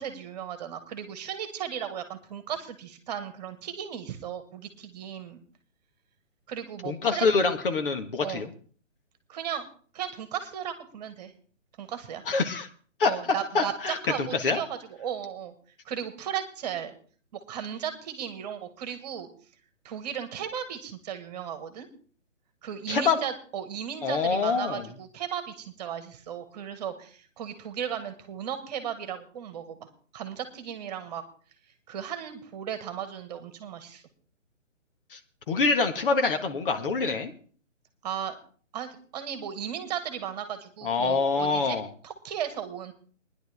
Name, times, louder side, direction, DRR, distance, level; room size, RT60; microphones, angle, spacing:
voice 1, 0.0-5.4 6.5-7.3 8.2-8.4 9.3-9.7 9.9-11.3 11.8-12.2 13.0-15.5 15.8-16.9 17.3-19.3 19.8-21.9 22.6-31.2 31.9-34.0 38.0-38.4 38.7-41.8 42.0-42.9, right 9 dB, 35° right, 9 dB, 1.7 m, -35 dB
voice 2, 6.8-8.5 12.3-12.7 13.0-13.1 13.5-14.6 22.9-23.2 24.0-24.9 35.1-35.2 35.5-37.3 40.8-41.9, left 4 dB, 45° left, 7 dB, 1.6 m, -25 dB
19.5 x 10.5 x 3.5 m, 0.43 s
figure-of-eight pair, 145°, 38 cm